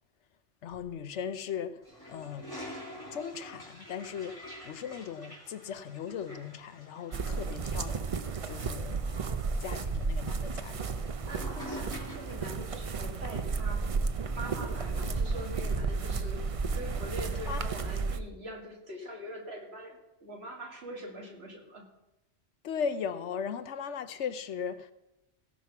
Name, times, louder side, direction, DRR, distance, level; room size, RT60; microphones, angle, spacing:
voice 1, 0.6-1.8 2.1-2.5 3.1-9.0 9.6-10.8 17.5-17.6 22.6-24.9, left 7 dB, 80° left, 1.1 m, -38 dB
Toilet flush, 1.8-12.5, left 1 dB, 20° left, 4.3 m, -47 dB
sound 1, 7.1-18.2, right 4 dB, 40° right, 0.5 m, -33 dB
voice 2, 8.8-9.5 11.3-13.8 14.3-16.4 16.7-21.9, right 1 dB, 65° right, 2.6 m, -43 dB
17.0 x 5.9 x 5.9 m
omnidirectional pair, 1.2 m